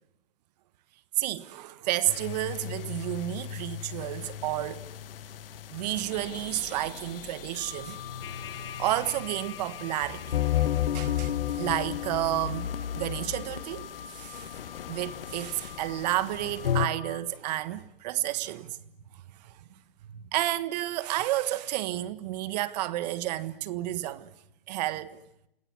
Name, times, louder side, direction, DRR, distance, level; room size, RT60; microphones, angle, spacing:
voice 1, 1.2-4.8 5.7-8.0 8.8-10.4 10.9-12.7 12.9-14.5 14.9-18.8 20.1-24.3 24.7-25.2, right 15 dB, 40° right, 1.5 m, -31 dB
sound 1, 2.1-16.9, left 10 dB, 60° left, 1.5 m, -34 dB
Wind instrument woodwind instrument, 7.5-17.2, left 7 dB, 80° left, 7.3 m, -46 dB
29.0 x 19.5 x 9.7 m
hypercardioid pair, 145°, 31 cm